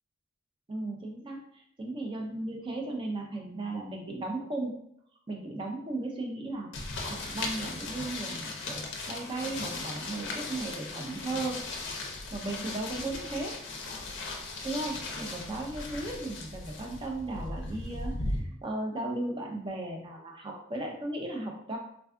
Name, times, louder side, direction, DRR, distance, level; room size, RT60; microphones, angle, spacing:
voice 1, 0.7-4.8 5.3-6.7 7.1-11.6 12.3-13.5 14.6-21.8, right 2 dB, 25° right, 1 dB, 0.4 m, -36 dB
sound 1, 6.7-18.4, left 2 dB, 50° left, 0.5 m, -37 dB
3.4 x 2.3 x 2.4 m, 0.70 s
head